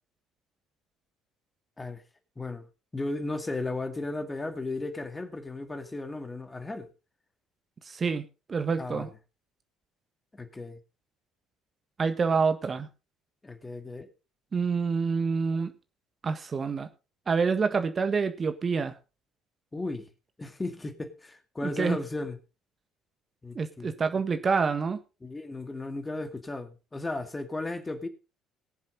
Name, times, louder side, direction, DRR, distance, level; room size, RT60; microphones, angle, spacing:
voice 1, 2.4-2.7 2.9-6.9 8.8-9.1 10.3-10.8 13.4-14.1 19.7-20.1 20.4-22.4 23.4-23.9 25.2-28.1, left 2 dB, 20° left, 2.4 m, -35 dB
voice 2, 7.8-9.1 12.0-12.9 14.5-15.7 16.2-16.9 17.3-18.9 21.6-22.0 23.5-25.0, right 5 dB, 35° right, 1.6 m, -27 dB
20.5 x 7.4 x 4.0 m
hypercardioid pair, 60°, 0 cm